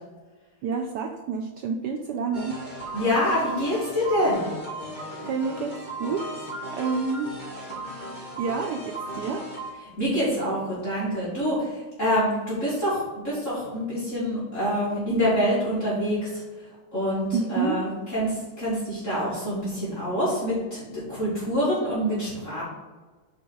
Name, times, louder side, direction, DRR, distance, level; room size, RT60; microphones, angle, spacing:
voice 1, 0.6-2.6 5.2-6.5 6.7-7.3 8.4-9.5 17.3-17.8, right 5 dB, 80° right, 3 dB, 0.9 m, -29 dB
sound 1, 2.3-9.7, right 1 dB, 25° right, 1.6 m, -36 dB
voice 2, 2.9-4.5 10.0-16.4 16.9-22.6, equal, 35° left, -10 dB, 2.8 m, -26 dB
7.1 x 4.5 x 4.7 m, 1.3 s
omnidirectional pair, 2.4 m